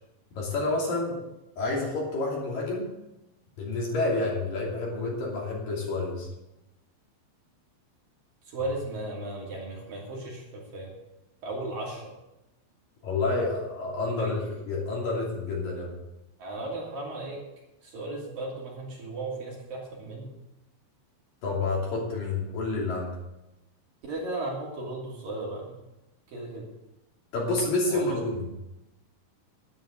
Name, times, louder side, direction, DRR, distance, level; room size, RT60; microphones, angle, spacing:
voice 1, 0.3-1.2 1.6-2.9 3.6-6.3 13.0-14.4 14.6-15.9 21.4-23.2 27.3-28.5, left 3 dB, 50° left, -3 dB, 4.2 m, -29 dB
voice 2, 8.5-10.9 11.4-12.1 14.2-14.3 16.4-17.4 17.8-20.3 24.0-25.8 26.3-26.6 27.9-28.0, right 2 dB, 50° right, -3 dB, 4.1 m, -35 dB
11.0 x 10.5 x 6.5 m, 0.95 s
omnidirectional pair, 5.5 m